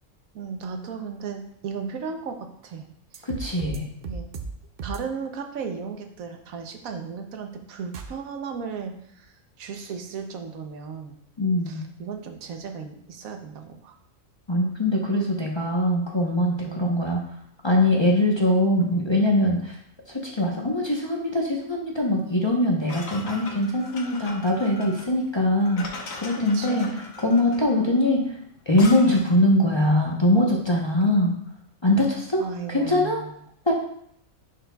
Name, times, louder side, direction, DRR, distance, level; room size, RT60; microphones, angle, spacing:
voice 1, 0.3-2.9 3.1-3.3 4.0-4.3 4.8-9.3 9.6-11.2 11.7-13.9 16.7-16.8 26.5-27.0 32.4-33.4, right 6 dB, 85° right, 5 dB, 1.2 m, -35 dB
sound 1, 3.1-4.5 4.8-5.0 7.9-8.1, right 4 dB, 60° right, 0.6 m, -34 dB
voice 2, 3.2-3.8 11.4-11.9 14.5-17.2 17.6-19.8 20.1-25.9 26.2-26.9 27.2-28.4 28.7-31.4 31.8-32.4 32.7-33.2 33.7-33.8, left 1 dB, 25° left, -2 dB, 0.7 m, -22 dB
sound 2, 22.9-29.4, left 3 dB, 70° left, 1.3 m, -39 dB
9.8 x 4.9 x 2.3 m, 0.69 s
omnidirectional pair, 1.4 m